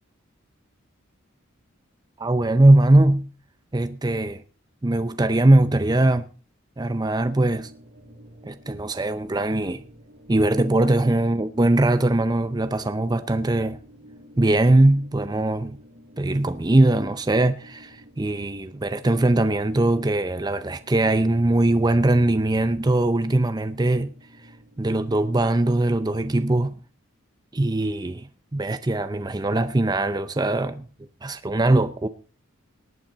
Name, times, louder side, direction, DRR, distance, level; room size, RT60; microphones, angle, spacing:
voice 1, 2.2-3.3 3.7-4.4 4.8-6.3 6.8-7.7 8.5-9.8 10.3-13.8 14.4-15.8 16.2-24.1 24.8-26.7 27.5-30.8 31.2-32.1, right 2 dB, 20° right, 0.5 m, -21 dB
sound 1, 7.3-25.8, equal, 55° right, 5.3 m, -51 dB
18.5 x 8.9 x 4.0 m
head